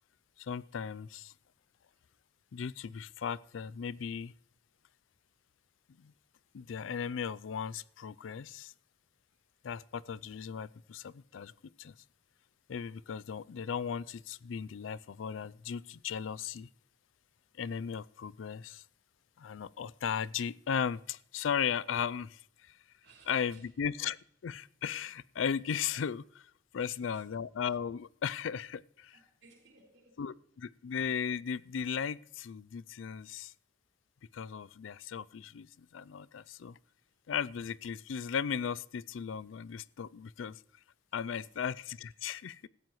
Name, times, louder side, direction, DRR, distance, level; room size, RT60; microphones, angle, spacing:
voice 1, 0.4-1.3 2.5-4.3 6.0-6.1 6.5-8.7 9.6-11.5 11.8-11.9 12.7-16.7 17.6-18.8 19.4-22.8 23.3-24.2 24.4-26.5 26.7-29.1 30.2-33.5 34.3-36.8 37.3-40.6 41.1-42.7, left 7 dB, 90° left, 20 dB, 0.4 m, -36 dB
voice 2, 23.0-23.7 26.8-27.3 29.1-30.1 41.1-41.6, right 4 dB, 75° right, -1 dB, 5.3 m, -63 dB
16.5 x 14.0 x 3.1 m, 0.70 s
head